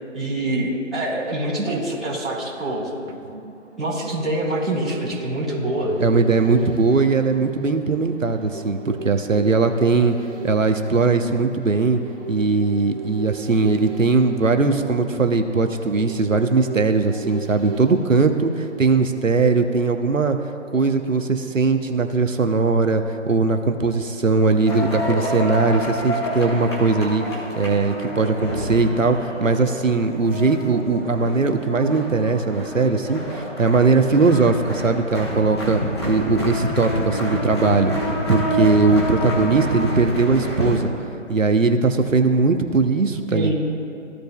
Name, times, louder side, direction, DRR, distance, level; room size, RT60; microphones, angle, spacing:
voice 1, 0.1-2.9 3.8-5.9 43.3-43.5, right 1 dB, ahead, -19 dB, 1.4 m, -25 dB
sound 1, 3.1-19.2 19.6-19.7, right 4 dB, 45° right, 1.6 m, -37 dB
voice 2, 6.0-10.2 10.4-12.0 12.3-20.4 20.7-35.8 36.1-40.9 41.3-43.5, right 4 dB, 80° right, 6 dB, 1.0 m, -20 dB
sound 2, 24.7-40.8, equal, 20° left, 1.2 m, -28 dB
15.0 x 5.2 x 2.3 m, 2.7 s
figure-of-eight pair, 160°, 38 cm